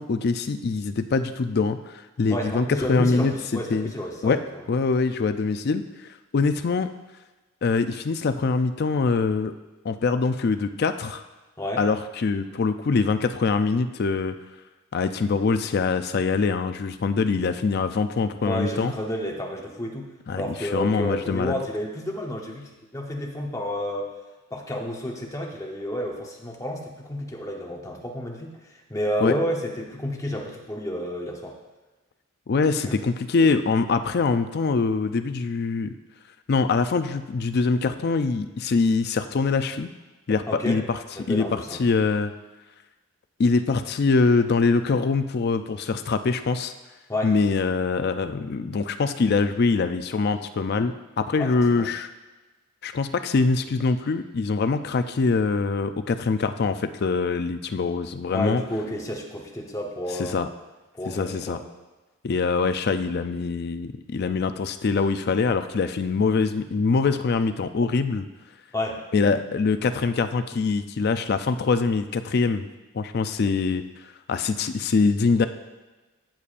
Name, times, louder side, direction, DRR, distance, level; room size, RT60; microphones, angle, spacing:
voice 1, 0.0-3.3 3.7-3.9 4.2-4.4 4.7-5.8 6.3-6.9 7.6-9.5 9.8-11.2 11.8-14.3 14.9-18.9 20.3-21.5 29.2-29.4 32.5-35.9 36.5-39.9 40.3-41.0 41.3-42.3 43.4-46.7 47.2-52.1 52.8-58.6 60.2-60.5 61.1-61.6 62.2-68.3 69.1-72.7 72.9-73.8 74.3-75.5, left 4 dB, 45° left, 10 dB, 0.4 m, -23 dB
voice 2, 2.3-4.7 11.6-11.8 18.4-24.1 24.5-31.6 32.8-33.0 40.5-40.8 41.1-41.8 47.1-47.3 51.4-51.9 58.3-60.5 60.9-61.6 68.7-69.0, equal, 15° left, 0 dB, 0.9 m, -31 dB
15.0 x 7.0 x 2.5 m, 1.2 s
head